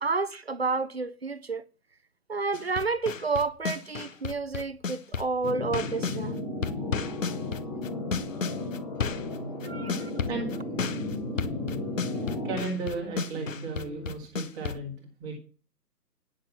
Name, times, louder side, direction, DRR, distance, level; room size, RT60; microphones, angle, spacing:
voice 1, 0.0-1.6 2.3-6.4 9.6-10.1, right 4 dB, 45° right, 0.5 m, -30 dB
sound 1, 2.5-6.2 6.6-14.8, left 6 dB, 55° left, 0.7 m, -33 dB
sound 2, 5.4-12.6, left 2 dB, 20° left, 1.3 m, -34 dB
sound 3, 7.7-14.2, left 1 dB, 75° left, 2.5 m, -42 dB
voice 2, 12.4-15.4, right 3 dB, 10° right, 1.4 m, -35 dB
9.7 x 6.5 x 5.6 m
figure-of-eight pair, 150°, 48 cm